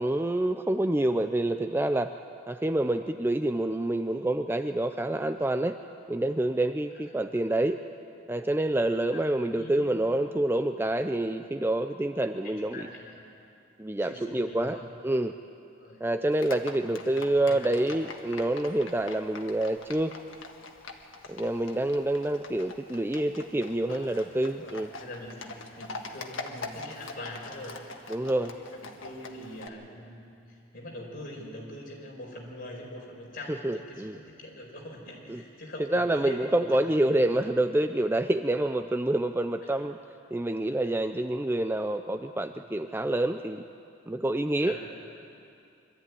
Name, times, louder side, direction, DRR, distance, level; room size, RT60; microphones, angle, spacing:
voice 1, 0.0-2.1 2.5-5.8 6.1-7.8 8.3-12.9 13.8-14.8 15.0-15.3 16.0-20.2 21.3-24.9 28.1-28.5 33.5-34.2 35.3-35.4 35.9-40.0 40.3-43.6 44.1-44.8, right 1 dB, 10° right, 8 dB, 0.4 m, -27 dB
voice 2, 9.1-10.0 12.4-13.2 14.0-14.9 15.8-16.0 16.7-17.8 23.9-24.2 24.6-27.8 28.3-37.5 39.7-39.8 40.3-40.4 42.7-42.9 44.6-44.8, left 1 dB, 45° left, -2 dB, 4.8 m, -44 dB
Livestock farm animals working animals, 16.3-29.7, left 3 dB, 75° left, 1.6 m, -44 dB
24.0 x 13.5 x 9.6 m, 2.6 s
head